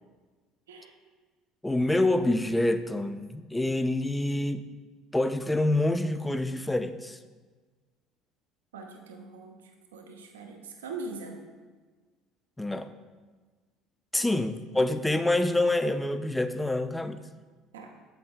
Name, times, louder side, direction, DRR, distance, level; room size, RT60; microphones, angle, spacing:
voice 1, 1.6-4.7 5.1-7.2 12.6-12.9 14.1-17.2, left 1 dB, 10° left, 11 dB, 0.3 m, -26 dB
voice 2, 8.7-11.5 17.7-17.9, right 3 dB, 85° right, 3 dB, 0.6 m, -42 dB
7.5 x 5.6 x 2.3 m, 1.4 s
hypercardioid pair, 65°, 0 cm